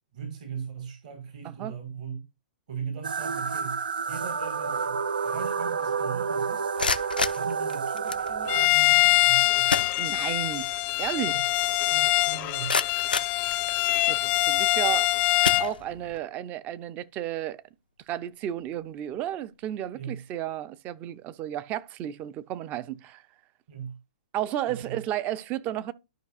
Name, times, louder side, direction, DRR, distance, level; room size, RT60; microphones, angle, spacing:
voice 1, 0.1-2.2 2.7-3.8 4.1-6.7 7.3-9.7 11.3-11.4 11.9-12.8 19.9-20.2 23.7-24.0 24.7-25.0, right 7 dB, 55° right, 1.9 m, -39 dB
sound 1, 3.0-8.7, right 6 dB, 80° right, 0.4 m, -29 dB
sound 2, 6.6-8.3 9.3-9.4 9.7-10.6 10.9-11.0 11.6-11.7 12.2-14.1 14.7-15.0 15.4-16.2, left 4 dB, 90° left, 0.6 m, -31 dB
Bowed string instrument, 8.5-15.7, left 19 dB, 35° left, 0.5 m, -24 dB
voice 2, 10.0-10.7 11.0-11.4 14.1-17.6 18.1-23.2 24.3-25.9, right 12 dB, 30° right, 0.5 m, -33 dB
12.0 x 5.3 x 2.5 m
hypercardioid pair, 120°, 5 cm